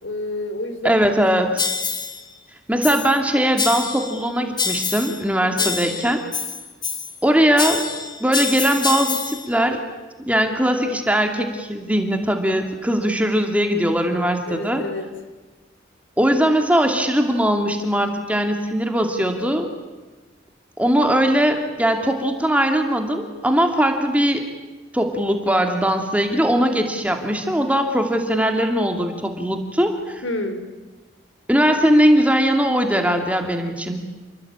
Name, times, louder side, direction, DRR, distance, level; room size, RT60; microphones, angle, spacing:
voice 1, 0.0-1.0 5.6-5.7 14.5-15.1 30.2-30.6, left 1 dB, 75° left, 9 dB, 3.5 m, -28 dB
voice 2, 0.8-1.7 2.7-6.2 7.2-7.9 8.2-9.8 10.3-14.8 16.2-19.7 20.8-24.4 24.9-30.2 31.5-34.0, equal, 5° right, 4 dB, 2.5 m, -20 dB
sound 1, 1.6-2.2 2.8-3.2 3.6-4.2 4.6-5.2 5.6-7.2 7.6-9.5, left 5 dB, 20° left, 1.8 m, -26 dB
29.5 x 22.5 x 8.8 m, 1.2 s
head